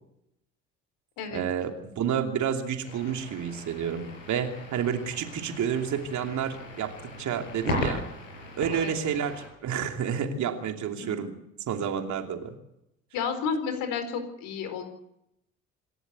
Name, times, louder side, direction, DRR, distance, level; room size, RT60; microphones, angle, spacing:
voice 1, 1.3-8.0 8.6-11.3 11.7-12.5, right 8 dB, 50° right, 5 dB, 2.9 m, -30 dB
sound 1, 2.8-9.5, left 2 dB, 75° left, 5.9 m, -37 dB
voice 2, 10.9-11.3 13.1-14.8, left 6 dB, 60° left, 7 dB, 4.5 m, -32 dB
26.5 x 13.0 x 8.2 m, 0.80 s
figure-of-eight pair, 55°, 38 cm